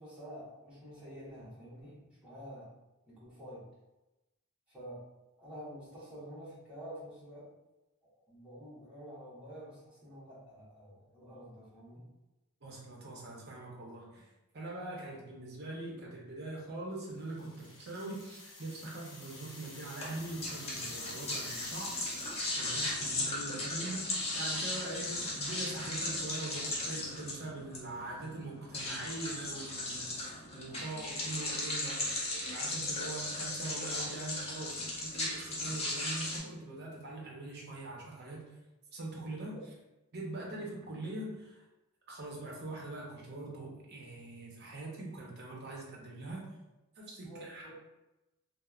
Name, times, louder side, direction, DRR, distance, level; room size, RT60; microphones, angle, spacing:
voice 1, 0.0-2.7 3.1-3.7 4.7-5.1 5.4-7.5 8.0-12.1 47.2-47.7, equal, 5° right, -10 dB, 1.1 m, -49 dB
voice 2, 12.6-38.5 38.9-39.5 40.1-41.6 42.1-46.4 47.0-47.7, right 2 dB, 50° right, -2 dB, 0.7 m, -43 dB
sound 1, 17.1-22.7, left 2 dB, 75° left, 0.7 m, -50 dB
sound 2, 20.0-36.4, left 2 dB, 30° left, 0.6 m, -37 dB
3.1 x 2.0 x 2.3 m, 1.0 s
head